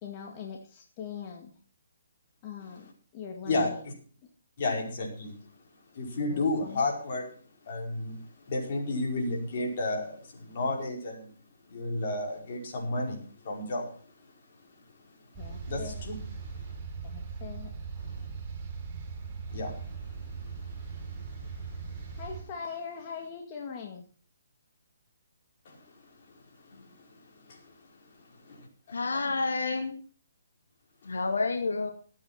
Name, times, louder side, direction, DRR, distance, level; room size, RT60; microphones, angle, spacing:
voice 1, 0.0-1.5 2.4-4.0 6.3-6.9 15.4-16.1 17.0-17.7 22.1-24.1, left 6 dB, 30° left, 1 dB, 2.0 m, -41 dB
voice 2, 3.4-3.9 4.6-5.3 5.9-7.3 7.7-8.2 8.5-11.3 11.7-13.9 15.7-16.2 19.5-19.8 25.6-25.8 26.7-26.9 27.5-27.6 28.4-29.2, left 2 dB, 50° left, 0 dB, 5.0 m, -32 dB
sound 1, 15.3-22.4, right 5 dB, 25° right, 4.2 m, -39 dB
voice 3, 28.9-29.9 31.1-31.9, left 3 dB, 80° left, 4 dB, 2.2 m, -29 dB
13.5 x 8.7 x 5.8 m, 0.43 s
hypercardioid pair, 150°, 0 cm